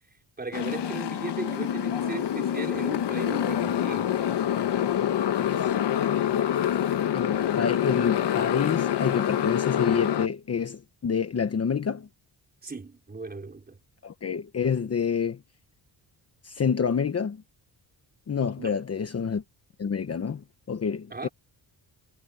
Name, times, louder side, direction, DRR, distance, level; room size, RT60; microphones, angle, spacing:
voice 1, 0.4-4.1 12.6-13.8 18.6-18.8 21.1-21.3, right 3 dB, 20° right, 4.9 m, -37 dB
Motorcycle, 0.5-10.3, left 10 dB, 60° left, 1.3 m, -26 dB
voice 2, 5.4-6.5 7.1-12.1 14.0-15.4 16.4-17.4 18.3-19.4 19.8-21.3, left 6 dB, 35° left, 1.0 m, -28 dB
wide cardioid pair, 160°, 45 cm